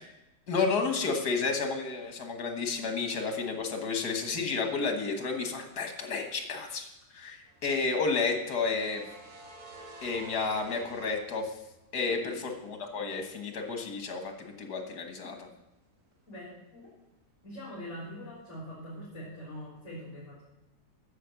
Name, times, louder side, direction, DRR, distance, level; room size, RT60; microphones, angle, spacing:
voice 1, 0.5-6.9 7.1-9.0 10.0-11.5 11.9-12.3 12.6-15.4, left 4 dB, 75° left, 4 dB, 2.0 m, -31 dB
sound 1, 7.5-11.9 12.2-12.3 14.5-14.9 15.1-15.3, right 2 dB, 70° right, 1.8 m, -49 dB
voice 2, 16.3-16.9 17.4-20.4, equal, 45° left, -7 dB, 3.8 m, -43 dB
9.4 x 7.1 x 7.0 m, 0.95 s
omnidirectional pair, 1.7 m